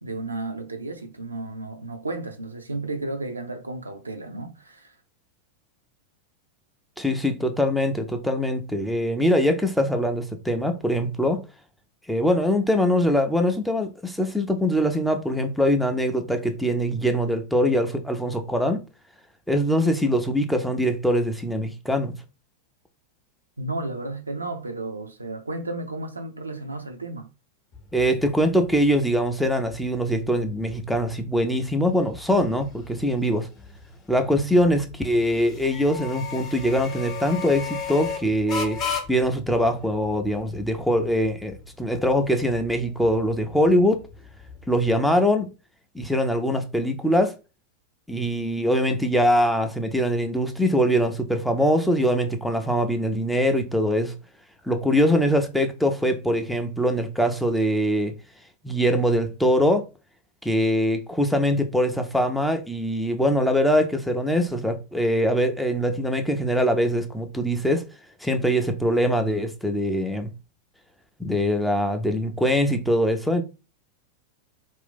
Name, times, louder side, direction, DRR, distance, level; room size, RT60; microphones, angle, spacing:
voice 1, 0.0-5.0 23.6-27.3, right 2 dB, 80° right, 0.5 m, -33 dB
voice 2, 7.0-11.4 12.1-18.8 19.5-22.1 27.9-33.5 34.1-38.8 39.1-44.0 44.7-45.5 45.9-47.3 48.1-54.2 54.6-58.1 58.6-59.9 60.4-67.8 68.2-70.3 71.2-73.4, equal, ahead, 0.4 m, -23 dB
sound 1, 27.7-44.9, left 6 dB, 30° left, 0.8 m, -37 dB
2.6 x 2.2 x 3.6 m
figure-of-eight pair, 90°, 0 cm